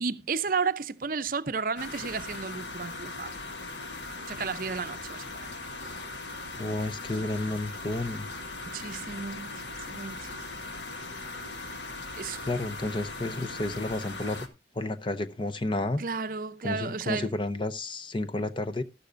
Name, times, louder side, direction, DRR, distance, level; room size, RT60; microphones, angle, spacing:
voice 1, 0.0-3.3 4.3-5.5 8.7-10.8 12.2-12.4 16.0-17.3, right 5 dB, 50° right, 0.6 m, -33 dB
sound 1, 1.8-14.5, left 2 dB, 80° left, 1.6 m, -39 dB
voice 2, 6.6-8.3 12.5-14.5 14.7-16.0 16.6-18.8, left 2 dB, 25° left, 0.7 m, -31 dB
13.5 x 12.0 x 2.5 m
head